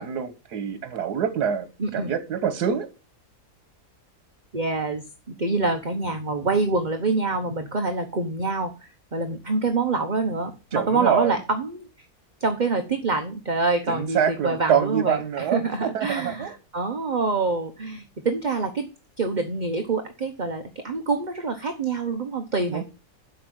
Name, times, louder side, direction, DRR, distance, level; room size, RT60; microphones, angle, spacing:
voice 1, 0.0-1.7 1.9-2.9 10.7-11.4 13.9-16.5 22.7-22.8, right 8 dB, 90° right, 1.5 m, -25 dB
voice 2, 1.8-2.1 4.5-5.0 5.4-11.9 12.4-18.9 19.2-22.8, right 3 dB, 35° right, 1.0 m, -26 dB
8.3 x 5.5 x 7.9 m
omnidirectional pair, 1.7 m